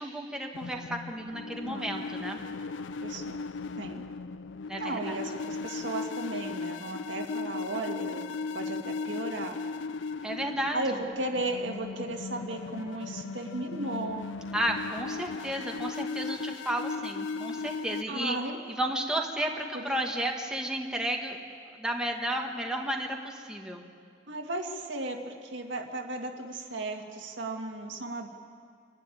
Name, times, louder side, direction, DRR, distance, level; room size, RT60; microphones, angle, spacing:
voice 1, 0.0-2.4 4.7-5.2 10.2-10.8 14.5-18.4 18.7-21.4 21.8-23.8, right 1 dB, 5° right, 0 dB, 1.6 m, -32 dB
sound 1, 0.5-18.0, left 4 dB, 80° left, 0.5 m, -37 dB
voice 2, 1.6-2.0 3.0-3.4 3.8-4.0 4.8-8.3 8.5-9.6 10.7-14.2 18.1-18.6 19.7-19.8 24.3-28.3, right 2 dB, 85° right, 2 dB, 2.0 m, -35 dB
27.0 x 11.5 x 9.9 m, 2.2 s
head